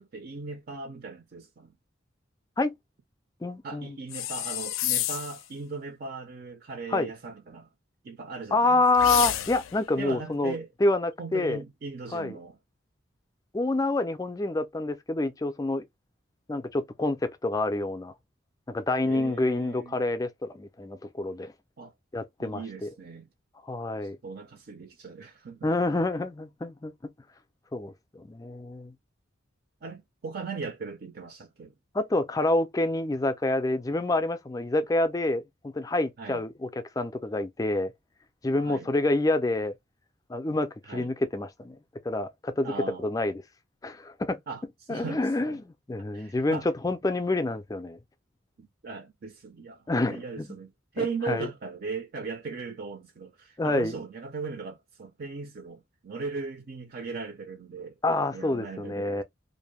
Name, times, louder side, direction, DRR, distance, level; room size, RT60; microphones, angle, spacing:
voice 1, 0.0-1.7 3.6-7.7 8.0-9.2 10.0-10.7 11.2-12.6 19.0-20.0 21.8-21.9 22.4-23.3 24.2-25.7 29.8-31.7 36.2-36.4 38.6-38.9 40.8-41.1 42.6-43.1 44.5-44.6 44.9-45.2 45.5-45.6 46.1-46.7 48.6-58.0 58.3-59.2, right 4 dB, 50° right, 0.4 m, -38 dB
voice 2, 3.4-4.0 6.9-7.1 8.5-11.6 12.1-12.4 13.5-15.9 16.5-18.1 18.7-21.5 22.1-22.9 23.6-24.2 25.6-27.1 27.7-28.9 31.9-37.9 38.4-39.8 40.3-41.8 42.0-42.7 43.0-43.4 43.8-44.4 44.9-48.0 49.9-50.6 51.0-51.5 53.6-53.9 58.0-59.2, left 2 dB, 15° left, 0.3 m, -27 dB
sound 1, 4.1-5.4 8.9-9.8, left 12 dB, 85° left, 0.4 m, -30 dB
2.6 x 2.1 x 3.0 m
head